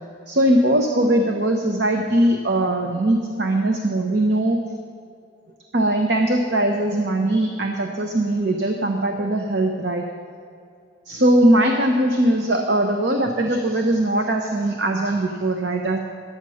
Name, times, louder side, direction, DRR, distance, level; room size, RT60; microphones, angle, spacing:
voice 1, 0.3-4.6 5.7-10.1 11.1-16.0, right 1 dB, 60° right, 3 dB, 0.8 m, -20 dB
11.5 x 8.9 x 6.3 m, 2.4 s
head